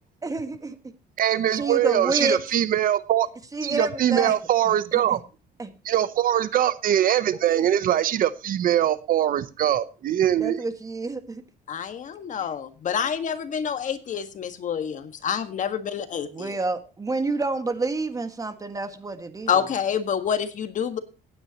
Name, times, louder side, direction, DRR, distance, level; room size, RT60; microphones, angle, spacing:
voice 1, 0.2-0.8 1.5-2.4 3.5-4.3 4.7-5.2 5.6-5.7 7.5-7.6 10.4-11.4 12.9-13.1 16.3-19.5, right 3 dB, 20° right, 9 dB, 1.7 m, -29 dB
voice 2, 1.2-3.3 3.6-5.2 5.8-10.6, right 11 dB, 55° right, 15 dB, 0.8 m, -22 dB
voice 3, 11.7-16.6 19.5-21.0, left 8 dB, 50° left, 9 dB, 1.6 m, -27 dB
17.0 x 9.6 x 2.9 m, 0.33 s
cardioid pair, 110°, 17 cm